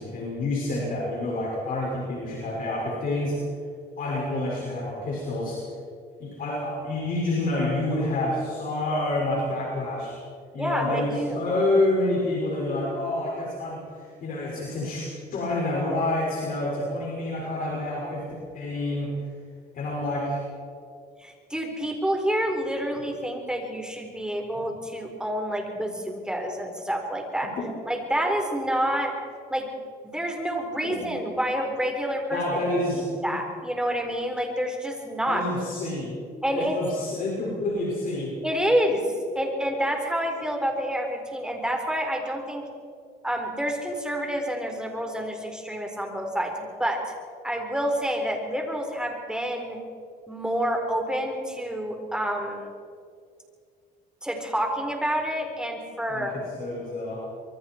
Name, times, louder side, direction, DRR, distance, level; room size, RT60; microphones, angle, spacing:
voice 1, 0.0-3.4 4.0-5.6 6.2-10.2 10.5-18.2 18.5-19.1 19.7-20.4 27.6-27.7 30.8-31.1 32.3-33.3 35.3-36.2 36.5-38.3 56.1-57.3, left 2 dB, 55° left, -3 dB, 5.8 m, -28 dB
voice 2, 10.6-11.4 21.2-27.5 27.9-29.1 29.5-29.6 30.0-32.6 32.9-35.4 36.4-36.8 38.4-42.6 43.2-47.0 47.4-49.8 50.3-52.7 54.2-56.4, equal, 5° right, 2 dB, 4.3 m, -28 dB
25.5 x 23.0 x 4.6 m, 2.3 s
cardioid pair, 110°, 17 cm